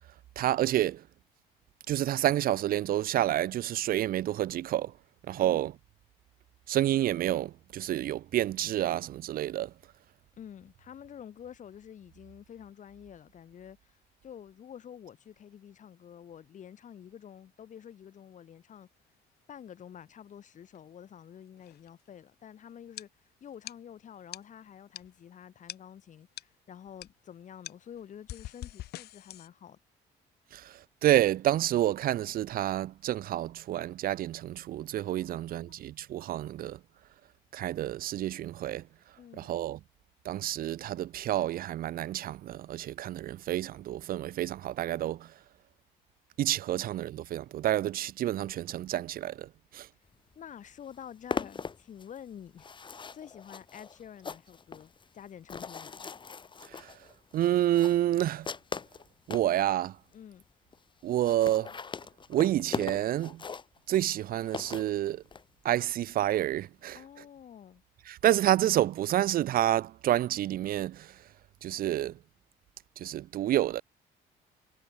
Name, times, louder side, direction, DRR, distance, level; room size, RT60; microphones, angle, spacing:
voice 1, 0.4-1.0 1.9-4.9 5.3-5.7 6.7-9.7 30.5-30.7 31.0-36.8 37.5-38.8 39.4-39.8 40.2-45.3 46.4-49.5 49.7-49.9 56.8-56.9 57.3-58.5 59.3-59.9 61.0-61.7 62.3-63.4 63.9-65.2 65.6-67.0 68.1-71.1 71.6-72.1 73.0-73.8, right 13 dB, 60° right, 0.7 m, -29 dB
voice 2, 5.4-5.7 10.4-18.9 19.5-23.1 23.4-29.8 35.2-35.7 39.2-39.5 46.7-46.9 50.4-56.0 60.1-60.4 66.9-67.8, left 9 dB, 45° left, 2.4 m, -49 dB
sound 1, 20.6-21.0 21.6-22.2 22.9-23.0 23.4-23.8 24.3-24.5 24.9-25.2 25.7-25.8 26.4-26.5 26.9-27.1 27.6-29.5, left 14 dB, 70° left, 4.7 m, -44 dB
sound 2, 50.3-50.4 50.7-59.5 60.1-60.2 60.4-60.5 60.7-60.8 61.1-65.4, left 5 dB, 30° left, 1.7 m, -40 dB
cardioid pair, 110°, 17 cm